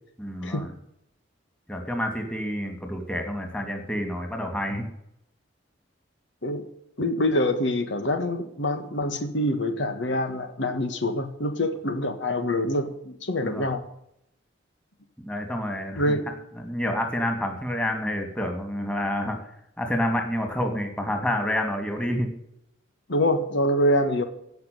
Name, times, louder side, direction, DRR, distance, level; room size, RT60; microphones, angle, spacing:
voice 1, 0.2-0.7 1.7-4.9 13.4-13.7 15.2-16.2 16.6-19.4 19.8-22.3, left 1 dB, 5° left, 4 dB, 2.6 m, -28 dB
voice 2, 7.0-13.8 16.0-16.2 23.1-24.2, left 1 dB, 70° left, 8 dB, 1.6 m, -25 dB
16.5 x 6.1 x 9.4 m, 0.76 s
head